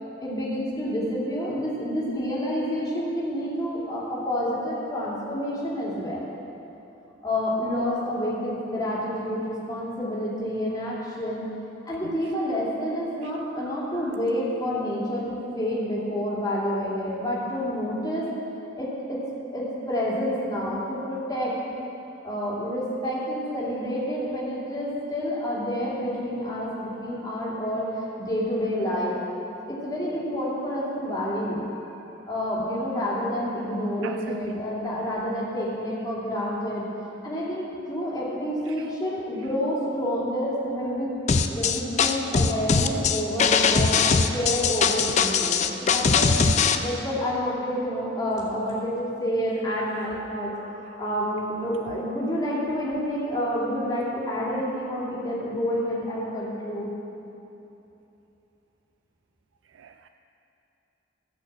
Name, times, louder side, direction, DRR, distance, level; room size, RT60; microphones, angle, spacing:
voice 1, 0.2-6.2 7.2-11.4 11.9-18.3 18.8-19.2 19.5-21.5 22.2-29.2 29.6-31.6 32.2-36.8 37.2-41.1 41.5-46.3 46.8-56.9, equal, 20° left, -7 dB, 2.6 m, -28 dB
voice 2, 34.0-34.6 38.8-38.9 44.0-44.2 46.4-46.6 54.5-54.6 59.8-60.1, right 6 dB, 80° right, 7 dB, 0.3 m, -38 dB
sound 1, 41.3-46.8, left 5 dB, 40° left, 0.4 m, -21 dB
13.5 x 5.6 x 7.4 m, 3.0 s
head